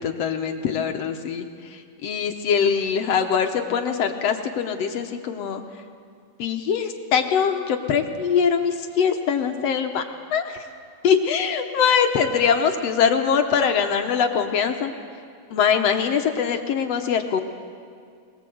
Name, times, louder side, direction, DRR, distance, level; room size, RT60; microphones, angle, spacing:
voice 1, 0.0-1.5 2.0-5.6 6.4-10.0 10.3-10.4 11.0-14.9 15.5-17.4, left 7 dB, 65° left, 6 dB, 1.9 m, -22 dB
21.5 x 21.0 x 7.8 m, 2.2 s
omnidirectional pair, 3.6 m